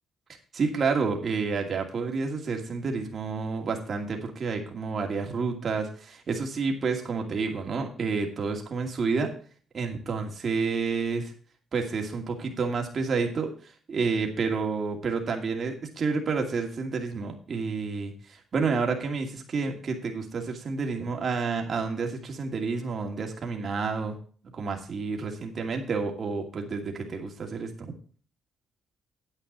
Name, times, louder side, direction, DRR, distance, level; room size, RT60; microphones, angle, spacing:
voice 1, 0.5-9.3 9.7-11.3 11.7-13.5 13.9-24.1 24.6-27.9, right 4 dB, 50° right, 2 dB, 2.5 m, -29 dB
9.6 x 8.7 x 4.1 m, 0.43 s
cardioid pair, 90°, 0 cm